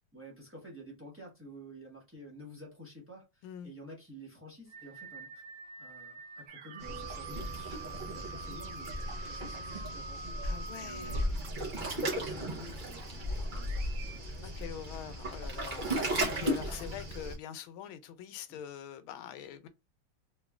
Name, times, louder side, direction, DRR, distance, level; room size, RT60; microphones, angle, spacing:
voice 1, 0.1-5.4 5.8-8.9 9.2-11.2 11.8-13.0 13.5-14.5 14.8-15.1 15.9-16.2 18.5-18.6, equal, 10° right, 0.6 m, -51 dB
sound 1, 4.7-11.2, right 4 dB, 45° right, 0.9 m, -45 dB
sound 2, 6.5-14.2, right 7 dB, 90° right, 0.8 m, -52 dB
Waves surf, 6.8-17.4, equal, 60° right, 0.5 m, -36 dB
voice 2, 10.4-11.3 11.9-12.2 14.4-19.7, left 9 dB, 80° left, 1.4 m, -44 dB
3.6 x 3.0 x 2.3 m
omnidirectional pair, 2.3 m